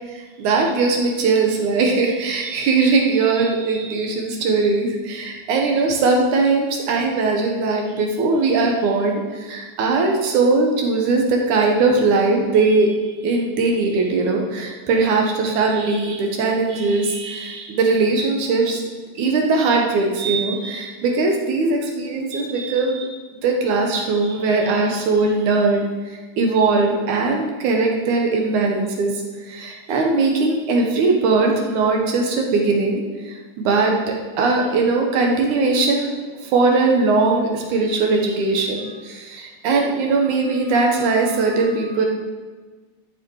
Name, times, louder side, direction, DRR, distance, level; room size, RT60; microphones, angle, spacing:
voice 1, 0.1-12.9 13.2-18.8 19.2-23.1 23.4-36.1 36.4-42.1, right 3 dB, 80° right, 1 dB, 2.8 m, -20 dB
12.0 x 7.8 x 4.8 m, 1.3 s
omnidirectional pair, 3.5 m